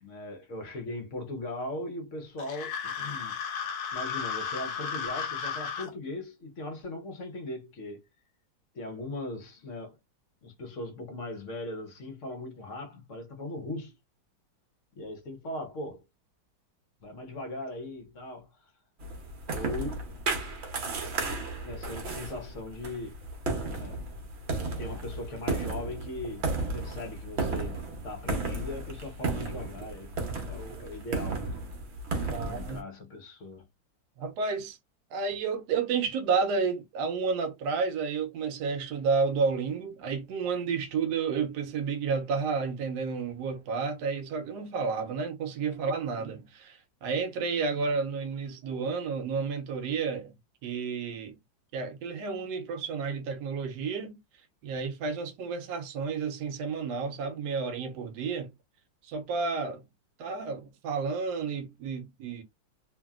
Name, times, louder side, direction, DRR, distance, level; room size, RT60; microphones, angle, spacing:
voice 1, 0.0-3.4 3.9-8.0 8.7-10.0 10.4-14.0 15.0-16.0 17.0-18.7 19.5-20.1 21.6-23.2 23.7-24.0 24.6-30.1 30.5-31.6 32.2-33.6, left 1 dB, 55° left, 0.9 m, -39 dB
sound 1, 2.4-5.9, left 6 dB, 85° left, 1.5 m, -34 dB
sound 2, 19.0-32.8, right 3 dB, 50° right, 0.8 m, -34 dB
voice 2, 32.3-32.8 34.2-34.8 35.1-50.3 50.6-51.4 51.7-54.2 54.6-58.5 59.1-59.8 60.2-62.4, right 5 dB, 75° right, 1.1 m, -31 dB
2.9 x 2.6 x 2.3 m
omnidirectional pair, 2.0 m